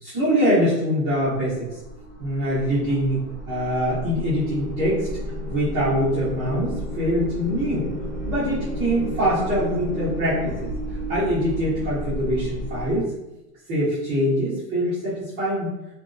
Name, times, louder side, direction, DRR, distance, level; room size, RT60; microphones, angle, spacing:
voice 1, 0.0-1.7 2.2-5.1 5.5-7.9 8.2-10.7 11.1-13.1 13.7-15.7, equal, 20° right, -14 dB, 0.7 m, -23 dB
sound 1, 1.3-13.0, equal, 65° left, 1.0 m, -33 dB
sound 2, 4.0-10.6, left 1 dB, ahead, 0.3 m, -37 dB
3.1 x 2.5 x 2.4 m, 0.98 s
supercardioid pair, 170°, 49 cm